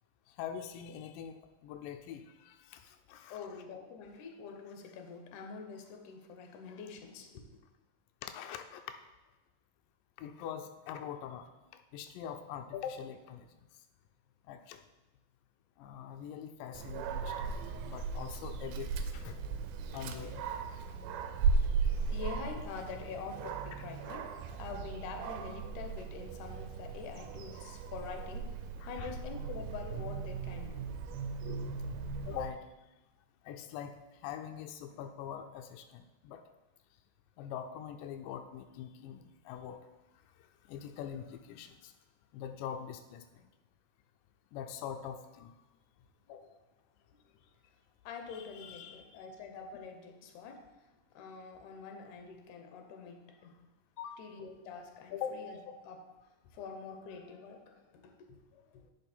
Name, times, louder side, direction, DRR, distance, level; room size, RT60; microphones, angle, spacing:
voice 1, 0.4-3.4 8.2-8.8 10.2-11.5 11.9-13.5 14.5-14.8 15.8-17.5 17.9-18.9 19.1-19.4 19.9-20.4 28.8-29.2 32.3-32.6 33.5-34.0 34.2-36.4 37.4-39.8 40.7-41.7 42.3-43.2 44.5-45.5 48.3-49.0 54.0-54.2 55.1-55.3, left 9 dB, 90° left, 6 dB, 2.2 m, -43 dB
voice 2, 3.1-7.6 21.9-30.9 31.4-31.7 46.3-46.4 47.1-47.3 48.0-50.7 51.1-53.6 54.2-55.6 55.8-56.1 56.5-58.9, left 5 dB, 75° left, 5 dB, 2.3 m, -46 dB
Dog, 16.7-32.5, right 5 dB, 80° right, 2.1 m, -37 dB
10.0 x 5.2 x 4.4 m, 1.1 s
omnidirectional pair, 3.8 m